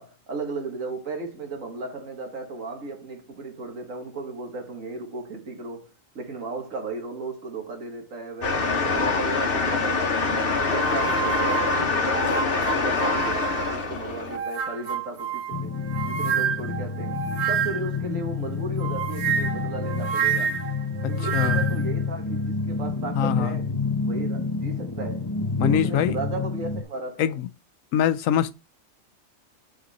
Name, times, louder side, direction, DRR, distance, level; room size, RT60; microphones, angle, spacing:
voice 1, 0.0-10.3 10.6-15.8 16.0-17.2 17.5-20.6 21.1-23.7 24.1-25.3 25.6-27.4, right 3 dB, 80° right, 2.0 m, -35 dB
sound 1, 8.4-14.4, left 4 dB, 50° left, 1.2 m, -24 dB
sound 2, 10.6-13.8 14.3-18.0 18.8-21.8, right 8 dB, 60° right, 1.0 m, -29 dB
sound 3, 15.5-26.8, left 4 dB, 30° left, 0.4 m, -29 dB
voice 2, 21.0-21.6 23.1-23.6 25.6-26.2 27.2-27.5 27.9-28.5, left 10 dB, 85° left, 1.0 m, -24 dB
5.4 x 4.9 x 4.0 m
omnidirectional pair, 1.3 m